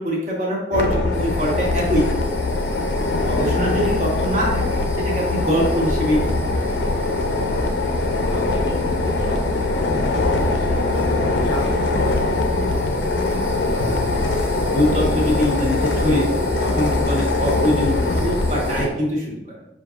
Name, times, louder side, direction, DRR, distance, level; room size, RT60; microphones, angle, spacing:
voice 1, 0.0-2.0 3.2-6.6 14.7-19.3, equal, 45° right, -4 dB, 1.2 m, -23 dB
sound 1, 0.7-18.9, left 2 dB, 90° left, 0.5 m, -22 dB
sound 2, 1.1-18.9, right 1 dB, 65° right, 1.3 m, -42 dB
voice 2, 7.3-7.8 8.3-13.5, left 2 dB, 25° left, 0 dB, 0.5 m, -34 dB
6.2 x 2.6 x 2.4 m, 0.89 s
head